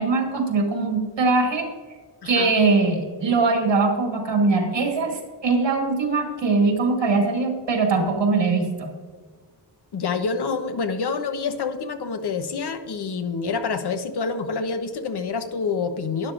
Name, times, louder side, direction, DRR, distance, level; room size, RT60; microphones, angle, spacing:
voice 1, 0.0-1.7 2.2-8.9, right 3 dB, 85° right, 2 dB, 2.4 m, -21 dB
voice 2, 2.2-2.5 9.9-16.3, left 5 dB, 65° left, 8 dB, 1.0 m, -27 dB
12.5 x 10.5 x 2.5 m, 1.5 s
wide cardioid pair, 175°, 43 cm